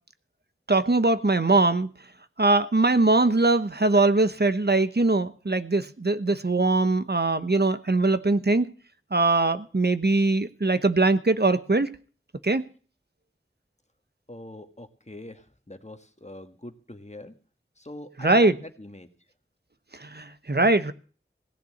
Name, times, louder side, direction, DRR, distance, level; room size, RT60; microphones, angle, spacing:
voice 1, 0.7-1.9 2.4-8.7 9.1-11.9 12.4-12.7 18.2-18.5 20.0-20.9, right 2 dB, 50° right, 12 dB, 1.0 m, -21 dB
voice 2, 14.3-17.3 17.8-19.1, left 1 dB, 35° left, 7 dB, 1.8 m, -43 dB
17.5 x 6.8 x 9.5 m, 0.40 s
wide cardioid pair, 40°, 21 cm